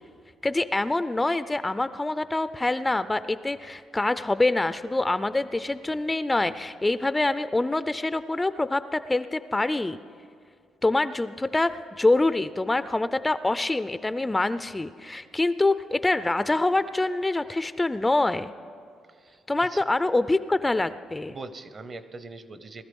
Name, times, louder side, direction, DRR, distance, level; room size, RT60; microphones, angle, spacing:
voice 1, 0.4-10.0 10.8-18.5 19.5-21.3, left 2 dB, 15° left, 13 dB, 0.4 m, -25 dB
voice 2, 19.1-19.4 19.7-19.9 21.3-22.8, right 3 dB, 40° right, 12 dB, 0.9 m, -41 dB
19.5 x 13.0 x 5.3 m, 2.3 s
cardioid pair, 90°, 0 cm